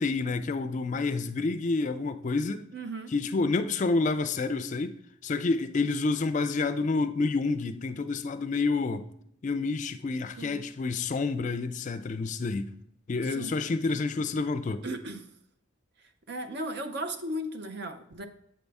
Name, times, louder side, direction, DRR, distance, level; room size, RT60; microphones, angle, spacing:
voice 1, 0.0-2.6 3.1-5.0 5.2-9.1 9.4-12.7 13.1-14.8, left 3 dB, 35° left, 0.3 m, -28 dB
voice 2, 2.7-3.1 10.4-10.6 13.2-13.5 14.8-15.3 16.3-18.3, right 1 dB, 55° right, 0.6 m, -36 dB
7.6 x 5.3 x 3.4 m
head